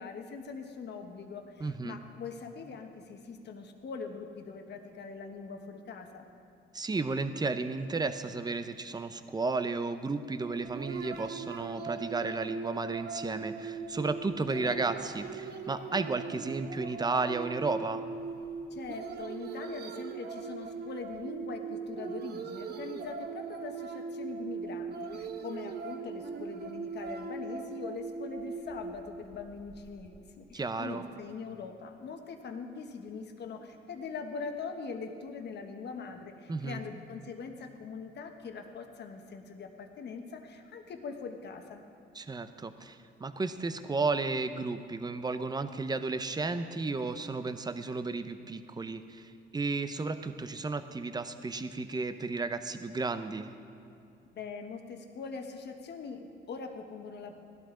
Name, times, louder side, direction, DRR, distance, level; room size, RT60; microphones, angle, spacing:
voice 1, 0.0-6.3 18.7-41.8 54.3-57.3, left 5 dB, 60° left, 5 dB, 1.2 m, -42 dB
voice 2, 1.6-2.0 6.7-18.0 30.5-31.0 36.5-36.8 42.1-53.5, right 3 dB, 20° right, 10 dB, 0.7 m, -33 dB
sound 1, 10.5-30.1, right 5 dB, 55° right, 0.9 m, -40 dB
17.0 x 12.0 x 3.8 m, 2.6 s
cardioid pair, 90°, 20 cm